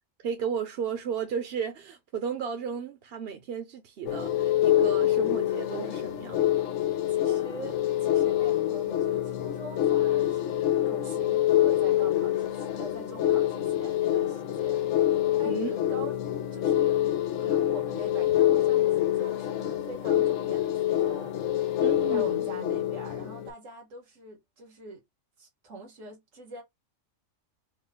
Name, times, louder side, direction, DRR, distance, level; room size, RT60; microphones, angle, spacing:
voice 1, 0.2-6.5 15.5-15.8 21.8-22.4, right 7 dB, 60° right, 0.8 m, -34 dB
sound 1, 4.1-23.5, left 12 dB, 80° left, 1.0 m, -26 dB
voice 2, 7.1-16.2 16.5-21.3 22.1-25.0 25.4-26.6, right 2 dB, 90° right, 1.8 m, -44 dB
4.7 x 2.1 x 3.6 m
omnidirectional pair, 1.3 m